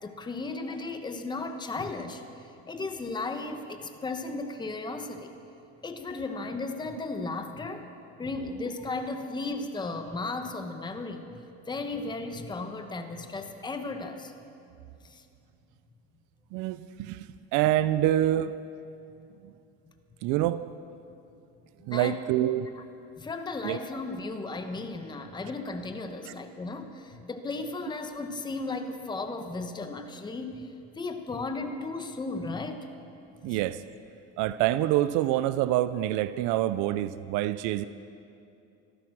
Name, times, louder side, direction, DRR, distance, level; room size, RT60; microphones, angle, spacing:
voice 1, 0.0-5.3 5.8-7.9 8.2-14.3 15.0-15.2 21.9-22.2 22.8-22.9 23.2-30.7 30.9-32.9 33.4-33.6, left 3 dB, 15° left, 7 dB, 1.0 m, -35 dB
voice 2, 16.5-17.3 17.5-18.5 19.4-19.5 20.2-20.6 21.8-22.7 23.6-23.8 33.4-33.8 34.4-37.8, right 13 dB, 70° right, 14 dB, 0.6 m, -26 dB
16.0 x 14.0 x 6.2 m, 2.6 s
cardioid pair, 115°, 32 cm